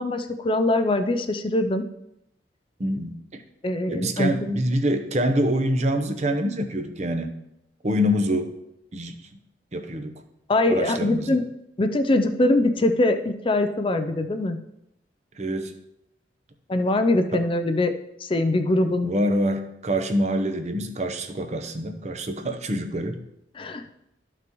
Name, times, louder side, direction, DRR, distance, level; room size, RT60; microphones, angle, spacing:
voice 1, 0.0-1.9 3.6-4.3 10.5-11.4 11.8-14.6 16.7-17.9 18.2-19.1 23.6-23.8, left 2 dB, 30° left, 8 dB, 0.4 m, -22 dB
voice 2, 2.8-3.4 3.9-7.3 7.8-8.5 8.9-9.1 9.7-10.1 10.7-11.4 15.4-15.7 17.3-17.5 19.0-23.2, equal, 40° right, 7 dB, 0.8 m, -25 dB
12.5 x 5.9 x 3.1 m, 0.83 s
head